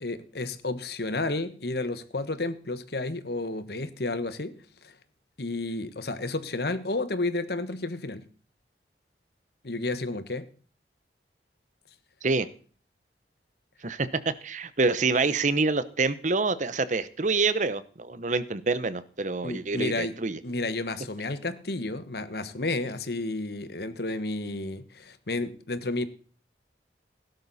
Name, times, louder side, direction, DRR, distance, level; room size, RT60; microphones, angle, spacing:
voice 1, 0.0-4.6 4.8-4.9 5.4-8.2 9.6-10.4 19.4-20.2 20.4-26.1, left 2 dB, 60° left, 1.3 m, -31 dB
voice 2, 14.4-20.4, right 3 dB, 45° right, 0.9 m, -26 dB
16.5 x 12.0 x 4.2 m
head